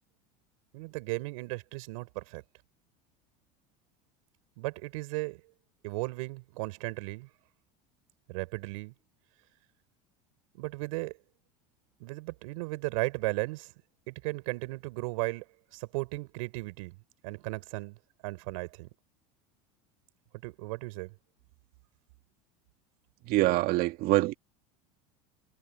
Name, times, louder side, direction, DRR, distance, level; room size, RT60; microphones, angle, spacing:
voice 1, 0.7-2.4 4.6-5.4 5.8-7.3 8.3-8.9 10.5-11.2 12.0-13.7 14.1-15.5 15.7-17.0 17.2-18.0 18.2-18.9 20.4-21.1, right 25 dB, 75° right, 6.1 m, -35 dB
voice 2, 23.3-24.3, right 19 dB, 60° right, 2.1 m, -25 dB
supercardioid pair, 105°, 18 cm